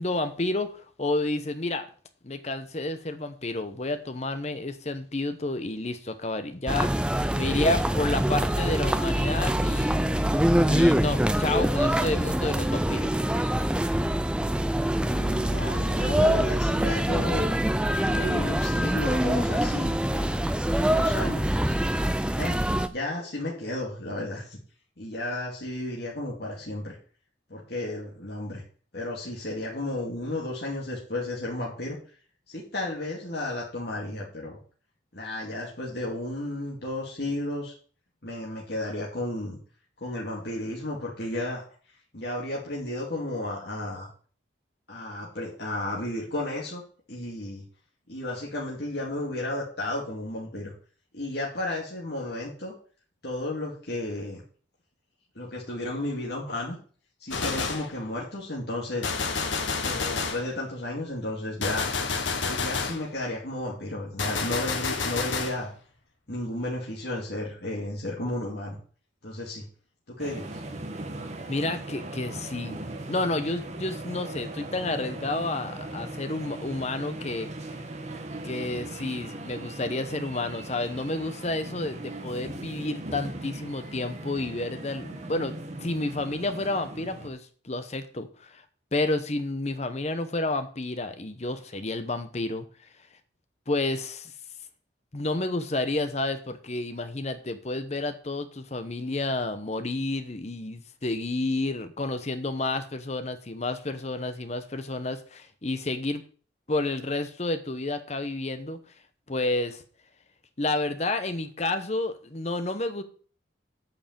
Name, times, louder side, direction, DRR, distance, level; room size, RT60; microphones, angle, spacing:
voice 1, 0.0-1.9 2.2-10.1 10.6-13.1 71.5-72.8 73.1-77.5 78.4-85.5 85.8-88.6 88.9-92.7 93.7-94.3 95.1-106.2 106.7-108.8 109.3-109.8 110.6-113.0, left 2 dB, 35° left, 9 dB, 0.9 m, -30 dB
sound 1, 6.7-22.9, right 1 dB, 5° right, 0.4 m, -24 dB
voice 2, 15.0-17.6 18.0-21.8 22.4-22.6 22.9-24.6 25.0-27.0 27.5-28.6 28.9-32.0 32.5-34.6 35.1-37.7 38.2-39.6 40.0-41.6 42.1-44.1 44.9-46.8 47.1-47.6 48.1-50.7 51.1-52.7 53.2-54.4 55.4-56.8 57.2-59.1 59.8-61.9 62.4-65.7 66.3-68.8 69.2-69.6 70.1-70.6, left 1 dB, 55° left, -4 dB, 2.4 m, -33 dB
Gunshot gunfire, 57.3-57.9 59.0-60.5 61.6-63.0 64.2-65.6, left 4 dB, 80° left, 1.4 m, -29 dB
sound 2, 70.2-87.3, right 2 dB, 35° right, 1.2 m, -39 dB
8.8 x 4.9 x 7.6 m, 0.42 s
head